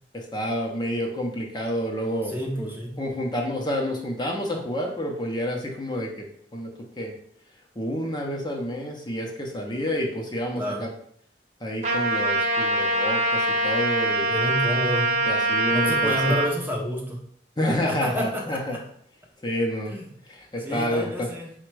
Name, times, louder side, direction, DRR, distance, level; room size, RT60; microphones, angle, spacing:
voice 1, 0.1-2.7 3.0-6.7 7.0-7.1 7.8-10.9 11.6-14.3 15.3-16.3 17.6-18.8 19.4-20.0 20.2-21.3, equal, 25° left, 0 dB, 0.6 m, -29 dB
voice 2, 2.3-3.0 10.6-10.9 14.3-15.3 15.7-17.2 17.8-18.8 19.9-20.1 20.6-21.5, equal, 10° right, -1 dB, 0.6 m, -29 dB
Trumpet, 11.8-16.5, right 2 dB, 40° right, 0.9 m, -23 dB
4.9 x 2.2 x 4.5 m, 0.63 s
head